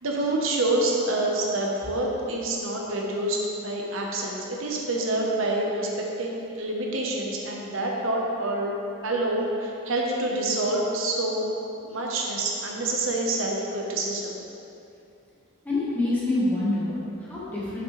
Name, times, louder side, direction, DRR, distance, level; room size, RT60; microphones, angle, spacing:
voice 1, 0.0-5.9 6.2-8.7 9.0-11.5 11.8-14.4, right 2 dB, 85° right, -2 dB, 1.0 m, -27 dB
voice 2, 15.6-17.8, left 2 dB, 10° left, -9 dB, 1.6 m, -26 dB
7.6 x 6.5 x 3.3 m, 2.7 s
head